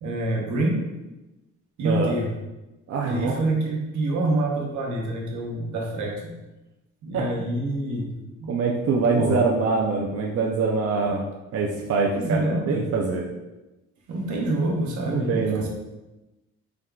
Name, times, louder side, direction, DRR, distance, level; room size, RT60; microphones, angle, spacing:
voice 1, 0.0-0.8 1.8-2.4 3.0-6.3 7.0-8.1 8.4-8.5 9.1-9.5 12.1-12.9 14.1-15.7, right 1 dB, 75° right, -1 dB, 1.1 m, -26 dB
voice 2, 2.9-3.3 7.1-7.2 8.5-11.2 11.5-13.2 15.1-15.7, right 4 dB, 50° right, -1 dB, 0.6 m, -24 dB
4.6 x 3.5 x 2.3 m, 1.0 s
cardioid pair, 90°, 30 cm